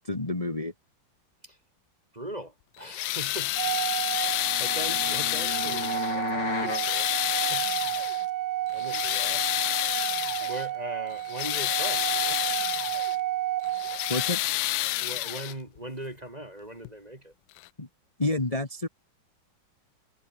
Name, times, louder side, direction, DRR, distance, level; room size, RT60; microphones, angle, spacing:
voice 1, 0.0-0.7 14.1-14.4 17.8-17.9 18.2-18.9, left 2 dB, 20° left, 1.8 m, -29 dB
voice 2, 2.1-7.7 8.7-9.4 10.4-12.4 15.0-17.3, right 1 dB, 20° right, 2.3 m, -40 dB
sound 1, 2.8-6.2 6.6-8.2 8.7-10.7 11.1-13.2 13.6-15.8 16.8-16.9 17.6-17.7, left 16 dB, 75° left, 1.3 m, -29 dB
Organ, 3.6-14.4, right 14 dB, 65° right, 1.1 m, -31 dB
sound 2, 4.3-6.9, left 5 dB, 60° left, 3.5 m, -34 dB
omnidirectional pair, 2.2 m